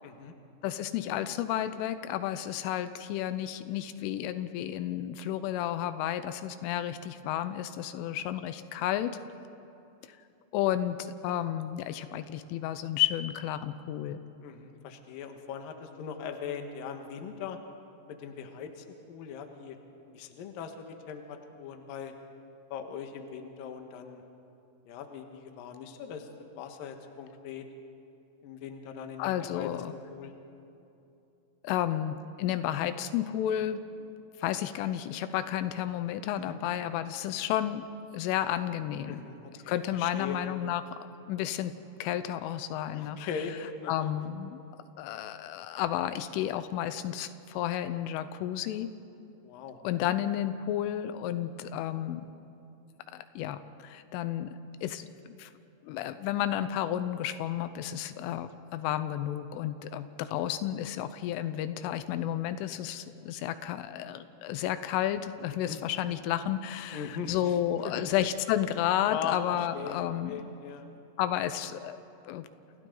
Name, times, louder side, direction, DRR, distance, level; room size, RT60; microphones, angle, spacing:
voice 1, 0.0-0.3 14.4-17.6 18.1-19.8 20.1-22.1 22.7-24.2 24.9-26.3 26.5-27.7 28.4-29.7 30.1-30.3 36.4-36.6 39.1-40.4 42.9-44.1 49.4-50.1 65.7-65.8 66.9-67.5 67.8-68.2 69.1-70.9, left 7 dB, 60° left, 5 dB, 2.6 m, -40 dB
voice 2, 0.6-9.2 10.1-10.2 10.5-14.2 29.2-29.9 31.6-33.8 34.4-37.9 38.1-39.1 39.7-41.0 41.3-41.7 42.0-43.2 43.9-44.6 45.0-48.9 49.8-52.3 53.1-54.6 54.8-55.5 55.8-70.5 71.2-72.0 72.3-72.5, left 11 dB, 85° left, 11 dB, 3.3 m, -32 dB
29.0 x 28.5 x 3.9 m, 2.7 s
omnidirectional pair, 5.6 m